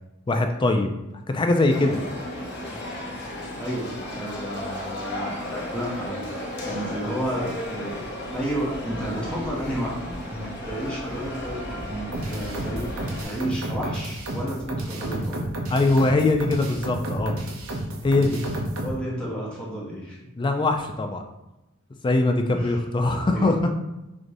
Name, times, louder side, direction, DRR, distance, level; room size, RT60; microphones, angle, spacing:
voice 1, 0.3-0.9 1.3-2.0 15.7-17.3 18.0-18.4 20.4-21.2 22.0-23.6, left 2 dB, 20° left, 5 dB, 0.3 m, -22 dB
sound 1, 1.7-13.2, left 1 dB, 55° left, 0.7 m, -34 dB
voice 2, 2.7-3.2 3.6-8.0 8.3-12.9 13.2-15.5 18.8-20.2 22.5-23.5, right 1 dB, 5° left, -6 dB, 0.7 m, -32 dB
sound 2, 12.1-19.0, right 1 dB, 75° right, 0.7 m, -31 dB
4.7 x 2.5 x 2.6 m, 0.98 s
head